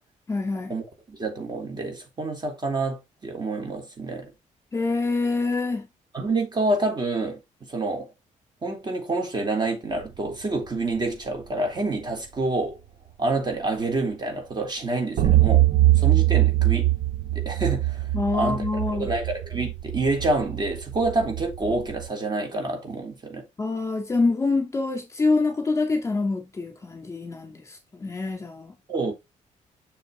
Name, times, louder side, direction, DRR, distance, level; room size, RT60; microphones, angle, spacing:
voice 1, 0.3-0.7 4.7-5.9 18.1-19.1 23.6-28.7, left 3 dB, 20° left, 2.4 m, -26 dB
voice 2, 1.1-4.3 6.1-7.4 7.7-8.1 8.6-12.8 13.2-15.7 16.0-16.9 17.4-18.1 18.3-18.6 18.9-23.4 28.9-29.1, right 2 dB, 30° right, 3.8 m, -27 dB
sound 1, 15.2-22.1, right 15 dB, 70° right, 1.0 m, -22 dB
6.8 x 6.8 x 3.6 m
cardioid pair, 115°, 14 cm